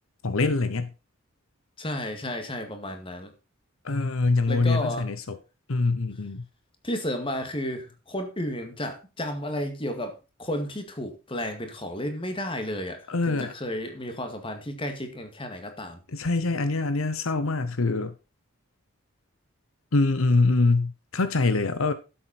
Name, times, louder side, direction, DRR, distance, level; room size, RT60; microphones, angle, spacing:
voice 1, 0.2-0.9 3.8-5.4 5.7-6.4 13.1-13.5 16.1-18.1 19.9-21.9, left 3 dB, 75° left, 0.9 m, -24 dB
voice 2, 1.8-3.3 4.5-5.1 6.8-16.0, left 1 dB, 25° left, 2.2 m, -32 dB
12.5 x 7.8 x 4.3 m
head